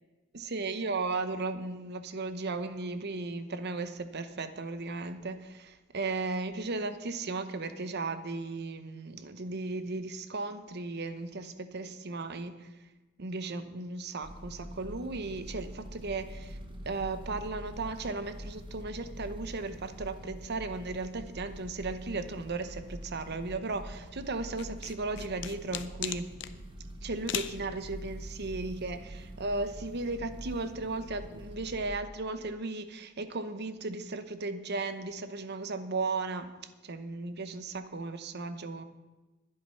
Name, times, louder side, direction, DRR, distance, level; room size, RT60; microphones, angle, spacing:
voice 1, 0.3-12.7 13.2-16.6 16.8-26.3 27.0-36.5 36.8-38.8, right 3 dB, 55° right, 10 dB, 0.9 m, -36 dB
sound 1, 14.2-31.9, right 1 dB, 25° right, 1.2 m, -45 dB
sound 2, 24.6-26.5 27.3-27.6, left 10 dB, 60° left, 0.6 m, -36 dB
11.5 x 10.0 x 5.6 m, 1.2 s
head